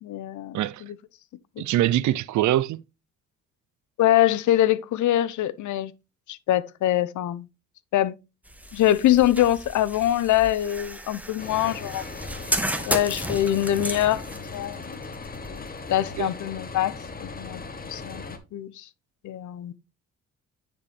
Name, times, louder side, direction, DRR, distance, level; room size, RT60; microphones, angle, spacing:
voice 1, 0.0-1.0 1.6-1.7 4.0-5.9 6.3-7.5 7.9-8.2 8.7-12.0 12.9-15.0 15.5-15.6 15.9-17.0 17.2-17.6 17.9-18.2 18.5-18.8 19.2-19.7, left 13 dB, 75° left, 0.7 m, -24 dB
voice 2, 1.6-2.8 16.2-16.3, right 13 dB, 75° right, 0.6 m, -23 dB
sound 1, 8.4-16.3, right 1 dB, 5° right, 1.1 m, -34 dB
sound 2, 11.4-18.4, left 3 dB, 30° left, 1.4 m, -38 dB
9.6 x 4.6 x 3.4 m
cardioid pair, 90°, 30 cm